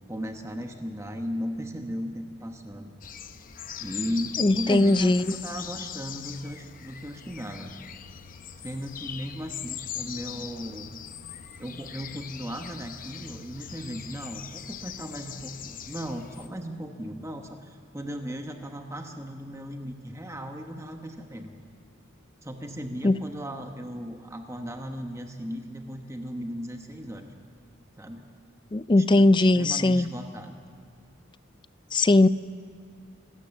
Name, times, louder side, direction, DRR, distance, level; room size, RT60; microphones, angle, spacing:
voice 1, 0.1-3.0 3.8-7.7 8.6-10.9 11.6-21.5 22.4-27.3 28.0-28.2 29.0-30.6, equal, 15° right, 4 dB, 1.1 m, -36 dB
sound 1, 3.0-16.5, left 9 dB, 40° left, 0.7 m, -40 dB
voice 2, 4.4-5.2 23.0-23.2 28.7-30.1 31.9-32.3, left 2 dB, 20° left, 16 dB, 0.4 m, -19 dB
26.5 x 13.5 x 7.2 m, 2.4 s
head